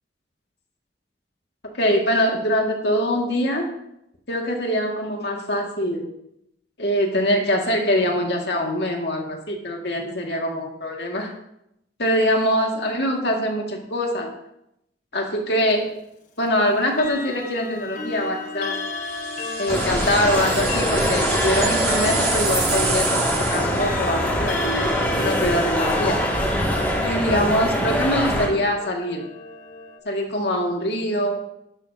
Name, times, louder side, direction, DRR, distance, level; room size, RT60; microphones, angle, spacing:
voice 1, 1.7-3.7 4.3-6.1 6.8-11.3 12.0-14.3 15.1-15.9 16.4-18.8 19.6-23.2 23.5-24.9 25.2-26.2 27.0-29.2 30.1-31.4, equal, 70° left, 1 dB, 2.1 m, -23 dB
Clock, 16.9-30.0, left 3 dB, 45° left, 1.3 m, -33 dB
sound 1, 19.1-23.9, right 6 dB, 60° right, 3.4 m, -28 dB
sound 2, 19.7-28.5, equal, 10° left, 2.2 m, -23 dB
12.5 x 12.0 x 2.8 m, 0.82 s
head